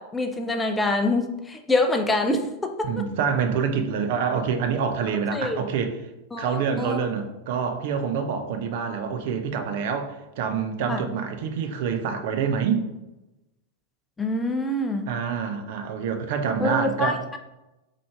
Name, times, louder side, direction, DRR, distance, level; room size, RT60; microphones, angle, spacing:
voice 1, 0.0-3.1 5.3-5.6 6.3-7.1 10.9-11.0 14.2-15.1 16.6-17.4, left 2 dB, 10° left, 5 dB, 0.4 m, -26 dB
voice 2, 2.8-6.0 6.4-12.8 15.1-17.2, right 6 dB, 50° right, 6 dB, 0.5 m, -26 dB
3.7 x 3.2 x 3.4 m, 0.97 s
figure-of-eight pair, 90°, 0 cm